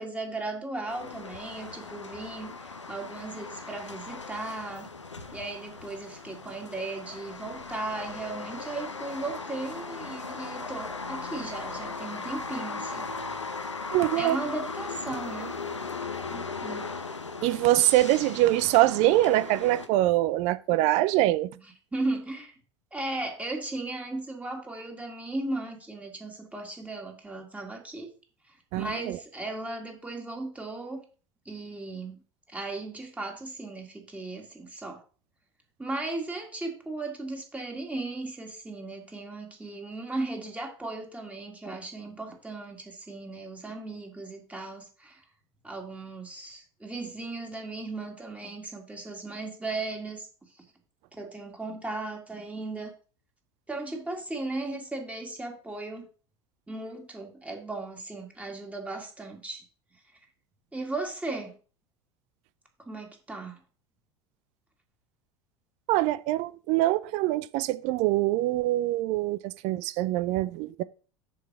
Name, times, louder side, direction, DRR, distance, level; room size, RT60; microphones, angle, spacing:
voice 1, 0.0-2.5 2.9-4.9 5.3-13.1 14.1-15.5 16.3-16.9 21.9-22.5 22.9-28.1 28.8-31.0 31.5-32.2 32.5-35.0 35.8-45.2 45.6-50.3 50.6-50.7 51.2-52.9 53.7-56.1 56.7-59.6 60.7-61.5 62.9-63.6, right 2 dB, 10° right, 2.2 m, -36 dB
sound 1, 0.9-19.9, left 4 dB, 90° left, 0.7 m, -38 dB
voice 2, 13.9-14.4 17.4-21.5 28.7-29.2 65.9-70.8, right 16 dB, 50° right, 0.5 m, -24 dB
6.8 x 4.7 x 6.1 m
figure-of-eight pair, 75°, 15 cm